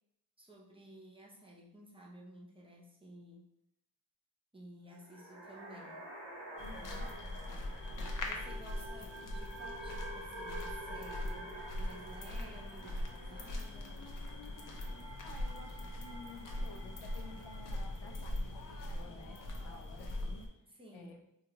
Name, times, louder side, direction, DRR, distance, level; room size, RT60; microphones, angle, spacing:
voice 1, 0.4-3.5 4.5-6.1 8.2-14.1 20.6-21.1, right 1 dB, 10° right, -3 dB, 0.5 m, -54 dB
sound 1, 4.9-18.3, right 1 dB, 65° right, 1.2 m, -49 dB
voice 2, 6.6-7.1 15.2-20.4 20.9-21.2, left 3 dB, 85° left, 4 dB, 0.7 m, -53 dB
sound 2, 6.6-20.5, left 1 dB, 45° left, 0.6 m, -41 dB
4.7 x 2.4 x 2.9 m, 0.79 s
wide cardioid pair, 145°, 47 cm